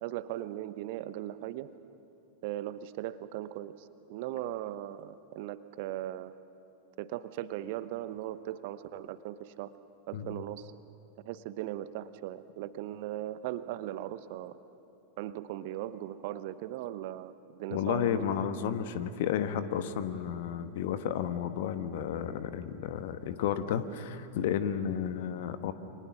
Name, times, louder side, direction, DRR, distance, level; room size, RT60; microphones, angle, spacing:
voice 1, 0.0-1.7 2.4-6.3 7.0-9.7 10.1-10.7 11.2-14.6 15.2-18.3, right 13 dB, 50° right, 14 dB, 0.9 m, -38 dB
voice 2, 17.7-25.7, left 9 dB, 55° left, 11 dB, 1.3 m, -32 dB
29.0 x 25.5 x 6.2 m, 2.8 s
figure-of-eight pair, 90°, 0 cm